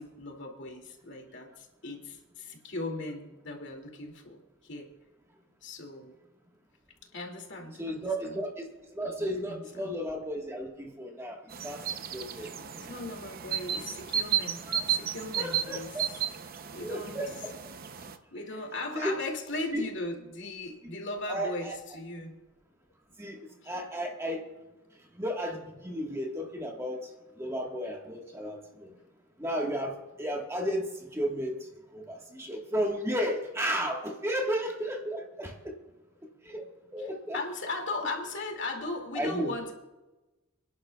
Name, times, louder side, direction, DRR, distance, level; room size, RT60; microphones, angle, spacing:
voice 1, 0.0-4.9 5.6-6.2 7.1-8.4 9.0-9.9 12.3-16.2 16.7-17.4 18.0-22.4 23.6-23.7 37.0-39.7, left 2 dB, 60° left, 3 dB, 2.3 m, -38 dB
voice 2, 7.8-12.5 14.7-15.0 15.4-16.1 16.8-17.5 18.9-19.2 19.7-19.9 21.3-21.7 23.2-24.5 25.1-27.1 27.4-28.9 29.4-31.6 31.9-35.7 36.4-36.6 36.9-37.4 39.1-39.6, equal, 15° right, 1 dB, 1.4 m, -33 dB
sound 1, 11.5-18.2, right 9 dB, 45° right, 0.6 m, -33 dB
29.0 x 11.0 x 2.3 m, 1.1 s
head